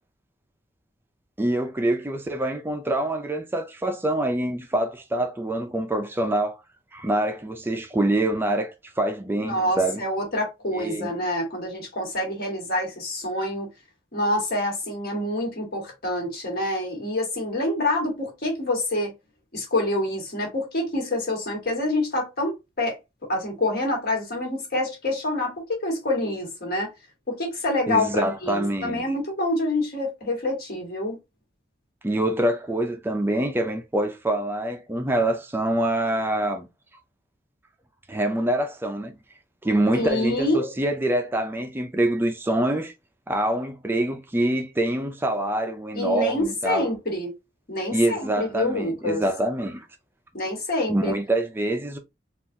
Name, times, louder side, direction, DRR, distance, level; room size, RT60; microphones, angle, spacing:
voice 1, 1.4-6.6 6.9-10.0 10.7-11.1 27.9-29.1 32.0-36.7 38.1-39.1 39.6-42.9 43.3-46.9 47.9-49.9 50.9-52.0, right 1 dB, 10° right, 0.4 m, -25 dB
voice 2, 9.4-13.7 14.1-19.1 19.5-26.9 27.3-31.2 39.9-40.7 45.9-47.3 47.7-49.2 50.3-51.1, left 1 dB, 60° left, 1.6 m, -27 dB
3.8 x 2.4 x 2.6 m
head